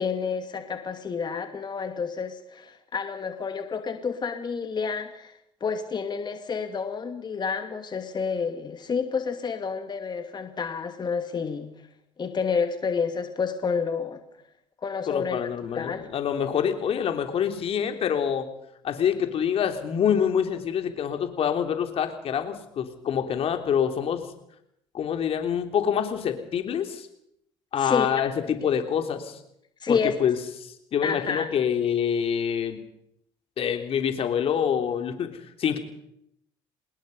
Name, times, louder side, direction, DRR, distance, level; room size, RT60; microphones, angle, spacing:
voice 1, 0.0-5.3 5.6-11.7 12.2-14.2 14.8-15.4 15.7-16.1 27.8-28.1 29.8-30.2 31.0-31.5, left 5 dB, 35° left, 7 dB, 2.5 m, -29 dB
voice 2, 15.1-18.5 18.8-24.3 24.9-27.1 27.7-29.4 29.9-32.8 33.6-35.8, left 8 dB, 55° left, 7 dB, 3.3 m, -26 dB
25.0 x 20.5 x 5.6 m, 0.75 s
hypercardioid pair, 60°, 12 cm